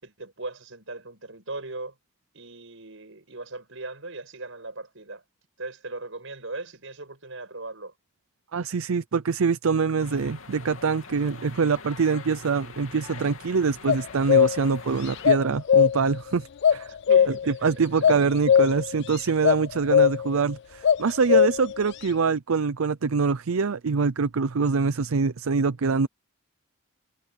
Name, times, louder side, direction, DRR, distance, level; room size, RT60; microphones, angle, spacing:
voice 1, 0.0-1.9 2.3-5.2 5.6-7.9 17.1-18.3, right 2 dB, 70° right, 6.0 m, -38 dB
voice 2, 8.5-16.9 17.6-26.1, right 5 dB, 85° right, 0.6 m, -24 dB
sound 1, 10.0-15.3, left 5 dB, 80° left, 2.8 m, -44 dB
sound 2, 13.9-14.7 15.2-16.2 16.6-17.6 18.0-19.1 19.4-19.6 19.9-20.4 20.8-21.8, left 8 dB, 55° left, 0.3 m, -19 dB
head